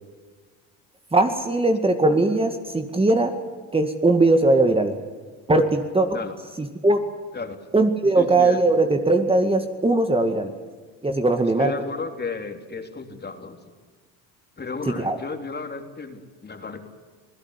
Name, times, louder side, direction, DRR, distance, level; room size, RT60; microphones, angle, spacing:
voice 1, 1.1-3.3 3.7-4.9 5.5-6.1 6.6-7.0 7.7-10.5 11.0-11.7 15.0-15.2, right 2 dB, 15° right, 6 dB, 2.1 m, -20 dB
voice 2, 8.2-8.6 11.6-13.6 14.6-16.8, left 4 dB, 30° left, 5 dB, 3.5 m, -33 dB
27.0 x 17.0 x 9.9 m, 1.4 s
supercardioid pair, 85°, 34 cm